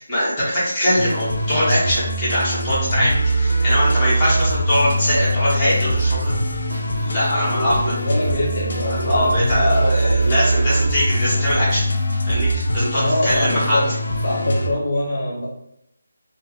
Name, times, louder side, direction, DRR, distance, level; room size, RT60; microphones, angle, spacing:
voice 1, 0.0-6.3 6.9-8.0 8.9-11.9 12.3-13.8, equal, 15° left, -12 dB, 1.5 m, -21 dB
sound 1, 1.0-14.7, right 1 dB, 60° left, 0.5 m, -22 dB
sound 2, 4.2-12.2, right 1 dB, 60° right, 0.8 m, -37 dB
voice 2, 7.5-10.3 12.9-13.9 14.2-15.5, left 1 dB, 35° left, -4 dB, 1.2 m, -25 dB
3.4 x 2.2 x 3.0 m, 0.75 s
figure-of-eight pair, 170°, 0 cm